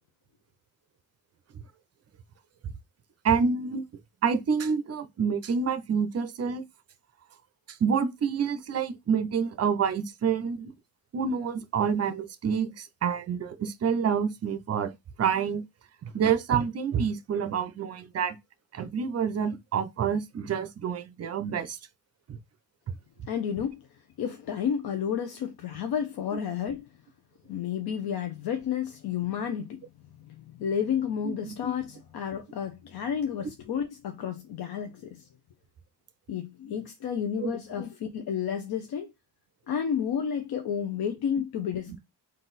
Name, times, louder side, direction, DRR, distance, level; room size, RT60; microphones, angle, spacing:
voice 1, 3.2-3.8 4.2-6.6 7.7-10.7 11.1-14.9 15.2-15.6 16.0-18.4 18.7-21.8 22.3-22.4 31.2-31.5 37.4-37.5, right 6 dB, 40° right, 0.5 m, -28 dB
voice 2, 23.3-23.8 24.2-26.9 27.5-29.9 30.3-35.3 36.3-39.1 39.7-42.0, left 8 dB, 75° left, 0.7 m, -31 dB
3.9 x 2.6 x 4.0 m
wide cardioid pair, 155°, 38 cm